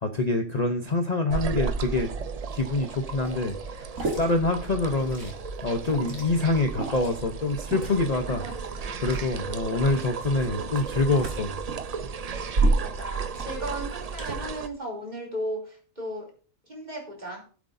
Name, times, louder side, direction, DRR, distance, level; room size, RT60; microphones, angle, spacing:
voice 1, 0.0-2.1 2.5-5.3 5.6-8.4 9.0-11.6, left 2 dB, 35° left, 5 dB, 0.8 m, -26 dB
sound 1, 1.3-14.7, right 5 dB, 60° right, 0.4 m, -34 dB
Liquid, 3.2-14.3, right 2 dB, 90° right, 2.8 m, -33 dB
voice 2, 12.8-16.3 16.7-17.5, right 1 dB, 30° right, -1 dB, 3.2 m, -36 dB
16.0 x 8.0 x 2.7 m, 0.39 s
omnidirectional pair, 1.4 m